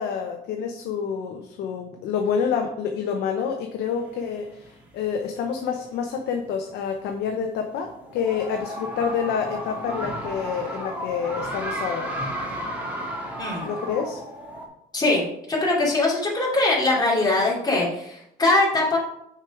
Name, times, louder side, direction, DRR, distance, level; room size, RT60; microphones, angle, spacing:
voice 1, 0.0-12.1 13.6-14.2, left 7 dB, 75° left, 4 dB, 0.8 m, -28 dB
sound 1, 3.8-4.9 5.4-5.5 5.8-5.9 7.5-14.7, equal, 10° right, 1.8 m, -33 dB
voice 2, 13.4-13.7 14.9-19.0, left 2 dB, 25° left, -4 dB, 2.9 m, -22 dB
6.6 x 4.6 x 4.8 m, 0.77 s
cardioid pair, 110°, 17 cm